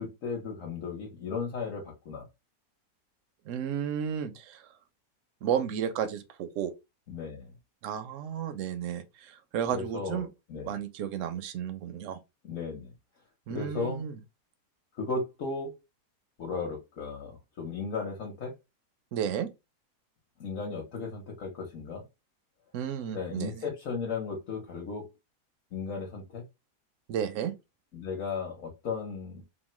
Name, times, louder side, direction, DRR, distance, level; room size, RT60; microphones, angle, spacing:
voice 1, 0.0-2.3 7.1-7.5 9.7-10.8 12.4-12.9 13.5-14.0 15.0-15.7 16.4-18.5 20.4-22.0 23.1-25.1 25.7-26.5 27.9-29.4, left 4 dB, 55° left, 1.1 m, -35 dB
voice 2, 3.5-4.6 5.4-6.7 7.8-10.3 10.6-12.2 13.5-14.2 19.1-19.5 22.7-23.6 27.1-27.5, right 8 dB, 70° right, 0.8 m, -32 dB
2.9 x 2.1 x 3.0 m
omnidirectional pair, 1.7 m